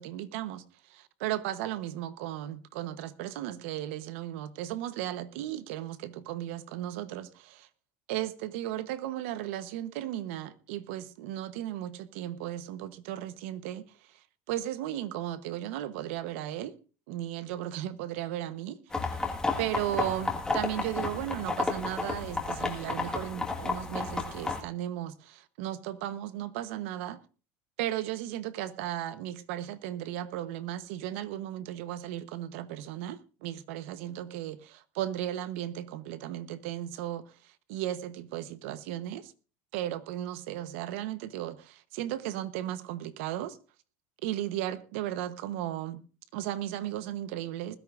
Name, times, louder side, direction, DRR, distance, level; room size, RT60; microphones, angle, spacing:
voice 1, 0.0-7.7 8.1-16.8 17.1-19.3 19.6-27.2 27.8-39.3 39.7-43.6 44.2-46.0 46.3-47.8, right 13 dB, 75° right, 1.1 m, -35 dB
sound 1, 18.9-24.6, left 3 dB, 10° left, 1.8 m, -32 dB
20.5 x 13.0 x 2.6 m
supercardioid pair, 150°, 7 cm